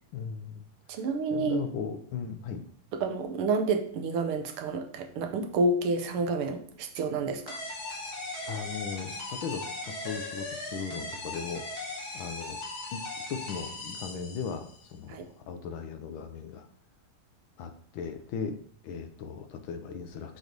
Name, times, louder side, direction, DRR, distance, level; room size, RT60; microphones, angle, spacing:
voice 1, 0.1-1.0 1.3-2.6 8.4-11.6 12.1-12.6 12.9-16.7 17.6-18.6 18.8-20.4, left 6 dB, 75° left, 7 dB, 1.3 m, -38 dB
voice 2, 0.9-1.7 2.9-7.6 15.1-15.3, right 3 dB, 80° right, 6 dB, 1.6 m, -29 dB
sound 1, 7.5-14.8, left 2 dB, 50° left, 1.6 m, -38 dB
6.4 x 3.1 x 5.1 m, 0.62 s
omnidirectional pair, 2.4 m